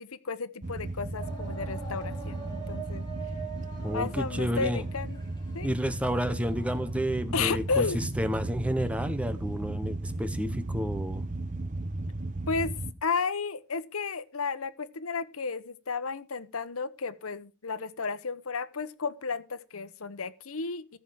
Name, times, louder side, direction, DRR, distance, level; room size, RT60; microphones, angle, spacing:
voice 1, 0.0-3.0 3.9-5.2 5.5-5.7 7.3-8.0 12.5-12.7 13.0-21.0, left 4 dB, 90° left, 1.0 m, -33 dB
sound 1, 0.6-12.9, right 2 dB, 35° right, 0.9 m, -35 dB
sound 2, 1.2-7.0, right 6 dB, 20° left, 3.2 m, -44 dB
voice 2, 3.8-4.8 5.6-11.3, equal, 5° right, 0.9 m, -31 dB
14.5 x 7.3 x 4.7 m
head